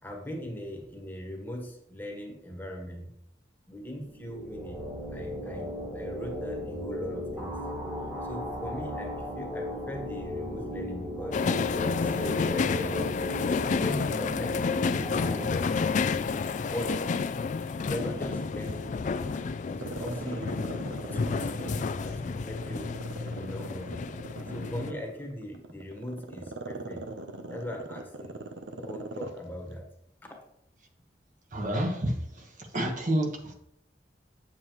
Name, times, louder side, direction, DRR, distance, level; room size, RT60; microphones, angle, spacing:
voice 1, 0.0-3.1 3.7-4.8 5.1-7.6 8.2-11.4 11.9-13.1 13.7-16.0 16.7-17.1 17.8-19.0 19.6-20.7 21.1-21.6 22.0-22.9 23.2-24.0 24.5-27.1 27.5-28.3 28.7-29.9, equal, 10° left, 1 dB, 1.2 m, -39 dB
sound 1, 4.0-15.5, left 1 dB, 15° right, 1.4 m, -36 dB
sound 2, 11.3-24.9, left 5 dB, 45° left, 0.3 m, -30 dB
Growling, 17.1-18.7 19.1-22.1 22.6-29.4 29.7-29.8, right 2 dB, 85° right, 0.8 m, -40 dB
voice 2, 31.5-33.5, right 1 dB, 45° right, 2 dB, 1.3 m, -29 dB
8.1 x 7.2 x 3.1 m, 0.74 s
head